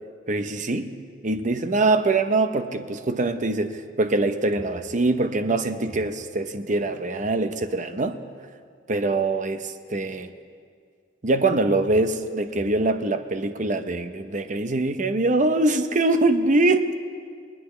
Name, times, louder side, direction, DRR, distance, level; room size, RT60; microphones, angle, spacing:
voice 1, 0.3-0.9 1.2-8.2 8.9-10.3 11.2-16.9, right 2 dB, 40° right, 9 dB, 0.8 m, -23 dB
21.0 x 19.5 x 3.3 m, 2.1 s
head